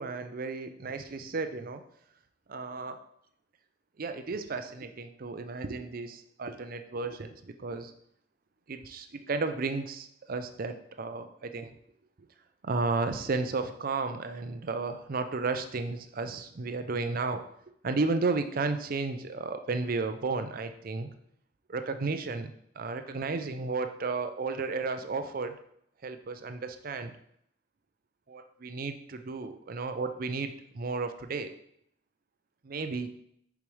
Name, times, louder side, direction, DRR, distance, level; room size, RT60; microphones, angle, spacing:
voice 1, 0.0-1.8 2.5-3.0 4.0-7.9 8.7-11.7 12.6-17.4 17.8-21.1 21.7-25.5 26.0-27.1 28.3-31.5 32.6-33.1, right 3 dB, 50° right, 8 dB, 0.5 m, -33 dB
6.9 x 4.9 x 3.2 m, 0.71 s
head